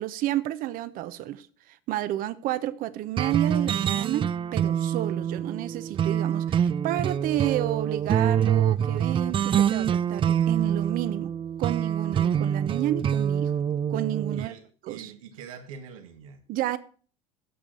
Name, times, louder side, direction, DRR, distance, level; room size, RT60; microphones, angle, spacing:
voice 1, 0.0-1.5 1.9-11.3 11.6-13.5 13.9-14.5 14.9-15.1 16.5-16.8, right 14 dB, 55° right, 1.0 m, -30 dB
sound 1, 3.2-14.5, right 9 dB, 30° right, 0.5 m, -25 dB
voice 2, 14.3-16.4, right 7 dB, 85° right, 1.7 m, -44 dB
17.0 x 6.2 x 3.9 m
supercardioid pair, 95°, 17 cm